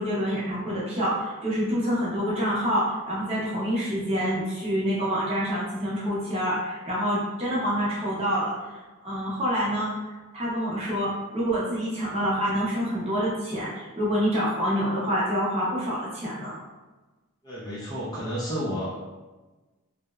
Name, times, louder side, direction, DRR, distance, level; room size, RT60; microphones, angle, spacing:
voice 1, 0.0-9.9 10.3-16.6, equal, 25° right, -7 dB, 0.6 m, -27 dB
voice 2, 17.4-19.1, equal, 15° left, -8 dB, 0.4 m, -31 dB
2.8 x 2.0 x 2.3 m, 1.2 s
head